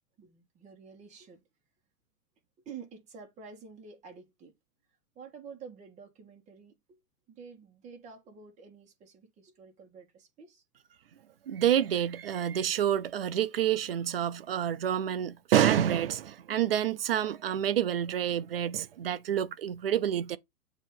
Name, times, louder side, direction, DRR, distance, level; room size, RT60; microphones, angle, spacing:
voice 1, 0.2-1.4 2.6-4.5 5.1-7.0 7.3-10.6, right 6 dB, 15° right, 1.5 m, -49 dB
voice 2, 11.5-20.4, right 10 dB, 40° right, 0.4 m, -28 dB
7.4 x 2.9 x 5.3 m
hypercardioid pair, 150°, 46 cm